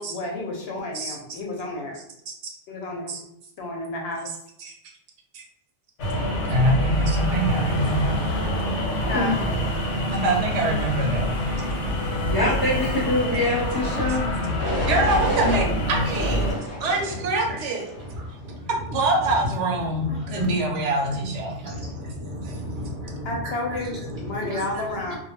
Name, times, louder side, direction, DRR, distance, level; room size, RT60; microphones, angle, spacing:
voice 1, 0.0-2.0 2.7-3.2 3.6-4.3 8.9-9.4 10.5-10.6 20.3-20.4 23.2-25.2, left 2 dB, 65° left, 0 dB, 0.8 m, -31 dB
sound 1, 6.0-16.5, equal, 90° left, 1.0 m, -26 dB
voice 2, 6.5-8.4 10.1-11.3 14.9-16.5 16.8-17.8 18.9-21.6, right 2 dB, 80° right, 1 dB, 0.9 m, -24 dB
voice 3, 12.3-14.2, left 1 dB, 20° left, -7 dB, 0.7 m, -24 dB
sound 2, 13.6-14.0 14.6-15.6 16.2-17.2 17.8-18.2, left 1 dB, 10° right, 0.8 m, -30 dB
voice 4, 15.5-15.8 16.2-17.6 17.9-25.2, equal, 55° right, -3 dB, 0.6 m, -35 dB
2.3 x 2.1 x 3.0 m, 0.74 s
omnidirectional pair, 1.2 m